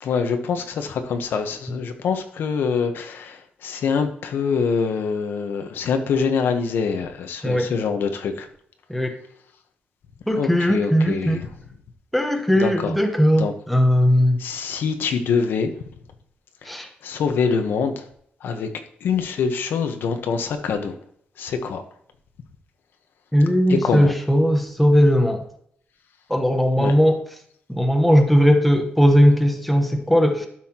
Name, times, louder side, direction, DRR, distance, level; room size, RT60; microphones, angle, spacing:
voice 1, 0.0-8.5 10.3-11.5 12.6-12.9 13.4-13.5 14.4-15.7 16.6-18.1 18.4-18.7 19.0-20.9 21.4-21.8 23.7-24.1 26.8-26.9, left 5 dB, 90° left, 7 dB, 1.1 m, -25 dB
voice 2, 10.3-11.4 12.1-14.4 16.7-16.9 23.3-25.4 26.3-27.2 27.7-30.5, equal, ahead, 4 dB, 1.0 m, -18 dB
12.0 x 5.7 x 2.9 m, 0.66 s
wide cardioid pair, 170°, 3 cm